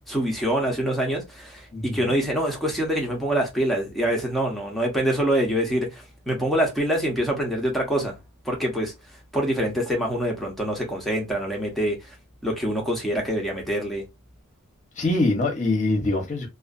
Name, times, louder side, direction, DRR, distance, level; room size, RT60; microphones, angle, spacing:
voice 1, 0.1-8.1 8.4-8.9 9.3-12.0 12.4-14.0, right 1 dB, ahead, 0.8 m, -25 dB
voice 2, 1.7-2.1 15.0-16.5, left 2 dB, 35° left, 0.8 m, -24 dB
2.4 x 2.4 x 2.5 m
head